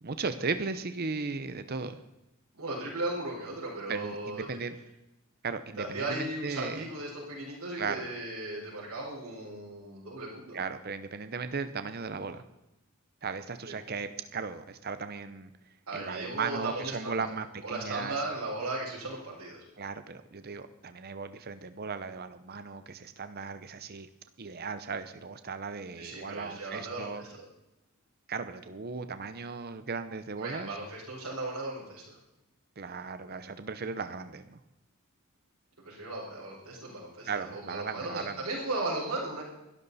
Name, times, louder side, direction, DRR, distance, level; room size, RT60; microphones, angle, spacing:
voice 1, 0.0-2.0 3.9-4.8 5.4-6.9 7.8-8.1 10.5-12.4 13.2-15.5 15.9-18.1 19.8-24.1 24.4-27.2 28.3-30.7 32.8-34.6 37.3-38.4, right 4 dB, 45° right, 10 dB, 0.8 m, -36 dB
voice 2, 2.5-4.5 5.8-10.6 13.7-13.8 15.9-17.3 17.6-19.6 25.9-27.4 30.4-32.2 35.8-39.4, right 2 dB, 90° right, -8 dB, 5.0 m, -36 dB
23.5 x 12.5 x 4.2 m, 0.97 s
head